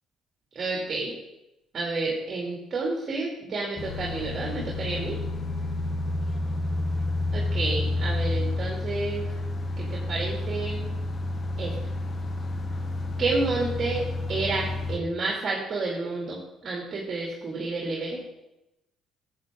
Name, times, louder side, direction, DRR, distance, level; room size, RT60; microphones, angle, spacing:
voice 1, 0.5-1.1 1.7-5.2 7.3-9.2 9.8-10.9 11.6-11.7 13.2-14.0 14.3-18.2, right 3 dB, 45° right, -3 dB, 2.5 m, -30 dB
sound 1, 3.8-15.0, left 2 dB, 40° left, 1.1 m, -30 dB
11.0 x 8.1 x 3.7 m, 0.93 s
supercardioid pair, 80°, 0 cm